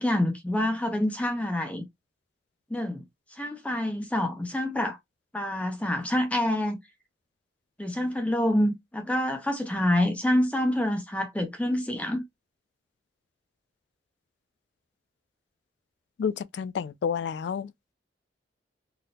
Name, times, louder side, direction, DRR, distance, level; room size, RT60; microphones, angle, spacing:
voice 1, 0.0-1.8 2.7-3.0 3.4-5.0 5.3-6.8 7.8-12.2, left 1 dB, 10° left, 0.5 m, -27 dB
voice 2, 16.2-17.7, left 7 dB, 75° left, 0.3 m, -30 dB
4.0 x 2.6 x 2.2 m
head